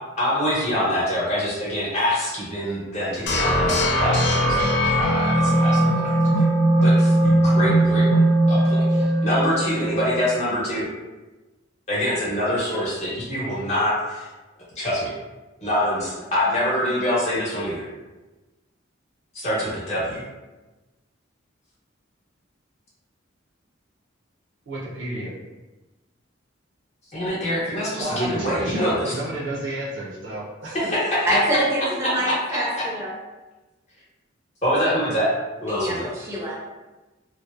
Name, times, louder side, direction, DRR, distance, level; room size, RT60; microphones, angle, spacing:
voice 1, 0.2-6.4 6.8-8.1 8.5-10.9 11.9-14.3 14.7-15.1 15.6-17.9 19.3-20.2 27.1-29.1 30.7-31.2 32.3-32.8 34.6-35.3 35.6-36.1, equal, 35° left, -7 dB, 1.0 m, -25 dB
sound 1, 3.3-10.2, right 1 dB, 60° left, 0.5 m, -19 dB
voice 2, 24.7-25.3 28.0-30.8, right 1 dB, 65° right, -5 dB, 0.6 m, -31 dB
voice 3, 31.3-33.1 35.6-36.6, equal, 15° right, -6 dB, 0.6 m, -25 dB
2.9 x 2.1 x 2.3 m, 1.1 s
head